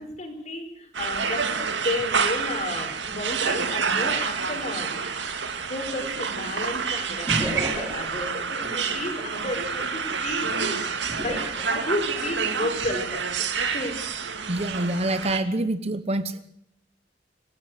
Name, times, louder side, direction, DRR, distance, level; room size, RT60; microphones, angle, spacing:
voice 1, 0.0-1.4 1.8-4.9 5.7-7.3 7.5-10.8 11.2-13.2 13.7-13.9, left 2 dB, 40° left, 5 dB, 5.0 m, -32 dB
sound 1, 0.9-15.4, right 6 dB, 75° right, 2.2 m, -28 dB
sound 2, 7.3-8.2 11.1-12.2 12.8-13.0, equal, 20° right, 4.3 m, -32 dB
voice 2, 14.5-16.4, right 1 dB, 35° right, 12 dB, 1.1 m, -26 dB
26.0 x 15.5 x 8.2 m, 0.74 s
head